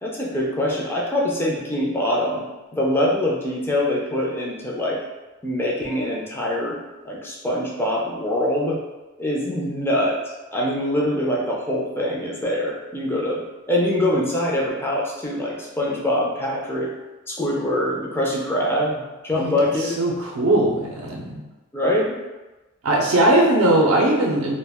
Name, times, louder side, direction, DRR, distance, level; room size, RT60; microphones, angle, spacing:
voice 1, 0.0-2.4 2.7-5.0 5.4-6.8 7.0-8.8 9.2-10.2 10.5-16.9 17.3-20.0 21.7-22.2, left 1 dB, 10° left, -3 dB, 0.4 m, -24 dB
voice 2, 20.0-21.4 22.8-24.5, right 1 dB, 80° right, -2 dB, 0.4 m, -19 dB
2.3 x 2.0 x 3.4 m, 1.1 s
head